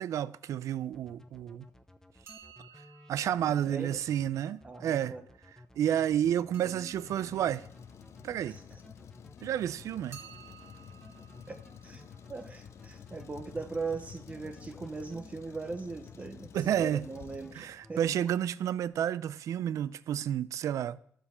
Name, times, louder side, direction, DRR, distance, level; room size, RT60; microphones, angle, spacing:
voice 1, 0.0-1.7 3.1-5.1 5.7-7.7 8.2-8.6 9.4-10.2 16.5-17.1 17.5-21.0, right 10 dB, 75° right, 0.4 m, -30 dB
sound 1, 0.9-15.3 15.6-16.3 16.6-17.5 17.8-18.4, left 1 dB, 10° left, 0.7 m, -55 dB
sound 2, 2.2-5.0 6.5-9.2 10.1-13.9 17.4-17.7 18.0-18.1 18.8-18.9 19.2-19.3, right 7 dB, 50° right, 1.8 m, -57 dB
voice 2, 3.5-4.0 4.6-5.3 6.5-6.9 8.5-8.8 11.5-18.0, right 4 dB, 25° right, 0.7 m, -40 dB
Truck, 7.0-18.2, left 8 dB, 60° left, 0.4 m, -51 dB
12.0 x 7.0 x 4.3 m
cardioid pair, 115°, 5 cm